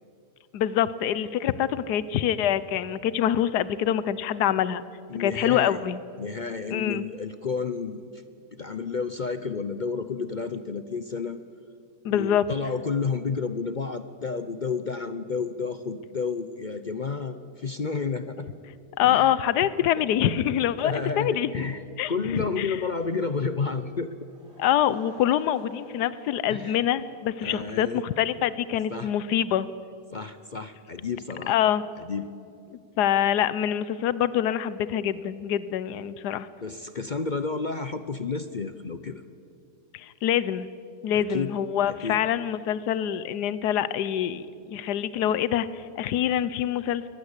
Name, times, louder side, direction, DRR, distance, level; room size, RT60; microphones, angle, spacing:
voice 1, 0.5-4.8 5.2-6.0 6.7-7.0 12.0-12.4 19.0-21.5 22.0-22.8 24.6-29.7 31.5-31.8 33.0-36.5 39.9-40.7 41.0-47.1, left 10 dB, 85° left, 16 dB, 1.3 m, -25 dB
voice 2, 5.1-5.8 6.2-8.2 8.6-11.4 12.1-18.5 19.0-19.3 20.8-21.8 22.1-24.1 26.5-26.8 27.4-28.0 28.9-29.1 30.1-31.6 32.0-32.3 36.6-39.2 41.1-41.5 41.9-42.2, left 5 dB, 45° left, 11 dB, 0.6 m, -31 dB
Laughter / Crowd, 24.2-28.7, right 1 dB, 55° right, 5.5 m, -53 dB
23.0 x 18.5 x 8.1 m, 2.5 s
omnidirectional pair, 1.7 m